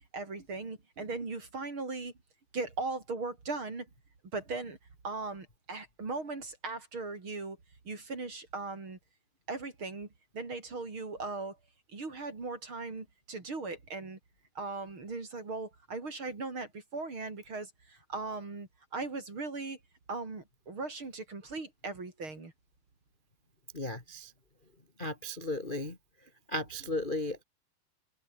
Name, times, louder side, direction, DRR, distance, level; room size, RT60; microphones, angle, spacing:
voice 1, 0.1-2.1 2.5-3.9 4.3-4.8 5.0-7.6 7.8-9.0 9.5-10.1 10.3-11.6 11.9-14.2 14.5-19.8 20.1-22.5, right 3 dB, 30° right, 4.5 m, -38 dB
voice 2, 23.7-24.3 25.0-26.0 26.5-27.4, left 1 dB, 15° left, 1.8 m, -35 dB
omnidirectional pair, 4.6 m